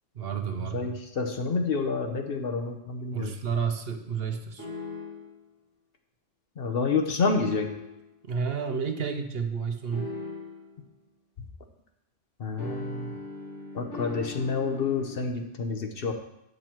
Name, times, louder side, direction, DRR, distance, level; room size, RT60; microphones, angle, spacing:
voice 1, 0.1-0.9 3.1-4.7 8.2-10.1, right 6 dB, 60° right, 6 dB, 0.9 m, -31 dB
voice 2, 0.7-3.4 6.6-7.7 12.4-13.2 13.7-16.1, left 4 dB, 55° left, 5 dB, 1.0 m, -28 dB
sound 1, 4.6-5.4 7.2-8.1 9.9-10.8 12.6-15.3, left 3 dB, 75° left, 2.7 m, -39 dB
8.8 x 6.4 x 4.5 m, 0.86 s
omnidirectional pair, 1.2 m